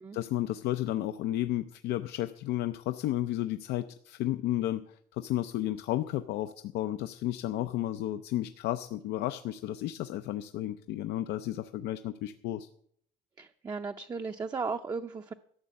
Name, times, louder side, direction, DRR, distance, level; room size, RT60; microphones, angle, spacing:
voice 1, 0.1-12.7, left 13 dB, 85° left, 10 dB, 0.5 m, -32 dB
voice 2, 13.4-15.3, right 4 dB, 20° right, 6 dB, 0.5 m, -36 dB
12.5 x 6.5 x 8.1 m, 0.67 s
cardioid pair, 110°, 17 cm